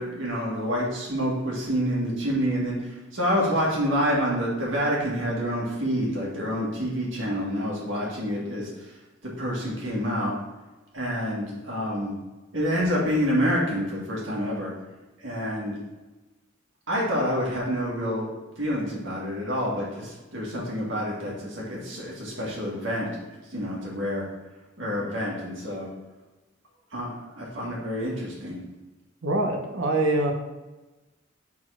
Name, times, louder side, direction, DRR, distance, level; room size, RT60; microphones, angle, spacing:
voice 1, 0.0-8.9 9.4-10.3 10.9-12.2 12.5-14.7 15.2-15.7 16.9-18.3 18.6-23.1 23.5-24.3 24.8-25.9 26.9-28.6, equal, 75° right, -4 dB, 2.0 m, -27 dB
voice 2, 29.2-30.3, right 2 dB, 90° right, 2 dB, 1.0 m, -24 dB
4.4 x 4.2 x 5.7 m, 1.1 s
head